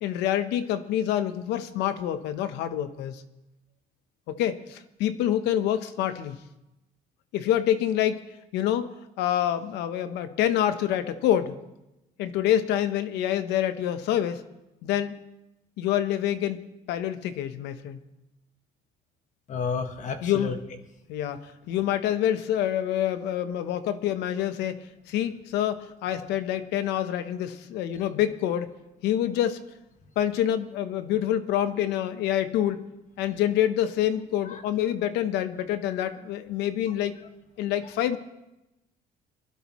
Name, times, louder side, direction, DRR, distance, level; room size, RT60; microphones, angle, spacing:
voice 1, 0.0-3.2 4.3-6.4 7.3-8.2 8.5-11.6 12.2-14.4 14.8-15.1 15.8-16.6 16.9-18.0 20.2-20.5 21.1-28.7 29.0-29.6 30.2-32.8 33.2-37.1 37.6-38.2, left 11 dB, 90° left, 11 dB, 1.0 m, -27 dB
voice 2, 19.5-20.5 34.4-34.6, left 5 dB, 45° left, 6 dB, 1.6 m, -31 dB
22.5 x 12.0 x 3.1 m, 0.92 s
cardioid pair, 110°, 17 cm